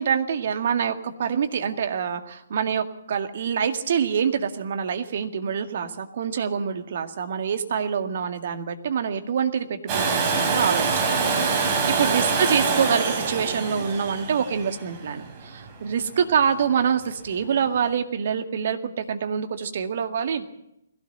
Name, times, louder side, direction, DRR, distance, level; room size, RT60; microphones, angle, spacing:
voice 1, 0.0-20.4, right 7 dB, 45° right, 7 dB, 2.0 m, -26 dB
Domestic sounds home sounds, 9.9-15.7 17.6-17.7, right 4 dB, 25° right, 5.2 m, -25 dB
21.5 x 17.0 x 7.9 m, 0.83 s
figure-of-eight pair, 130°, 0 cm